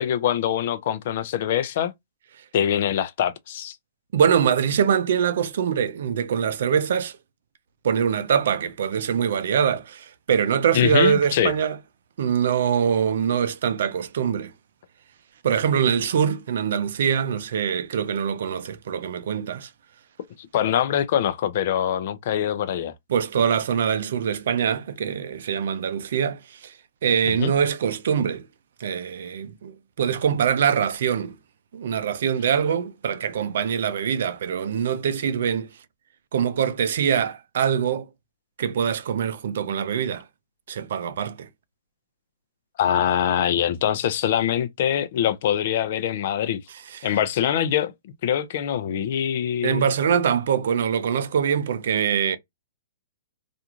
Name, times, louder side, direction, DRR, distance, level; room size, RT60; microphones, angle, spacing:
voice 1, 0.0-1.9 2.5-3.8 10.7-11.5 20.5-22.9 27.3-27.5 42.8-46.6 47.0-47.9 48.2-49.9, left 10 dB, 50° left, 0.4 m, -23 dB
voice 2, 4.1-7.1 7.8-11.8 12.2-14.5 15.4-19.7 23.1-26.7 27.0-28.5 28.8-31.4 31.7-35.7 36.3-38.0 38.6-40.2 40.7-41.5 46.9-47.1 49.6-52.4, right 8 dB, 65° right, 0.4 m, -23 dB
2.5 x 2.3 x 2.9 m
hypercardioid pair, 145°, 0 cm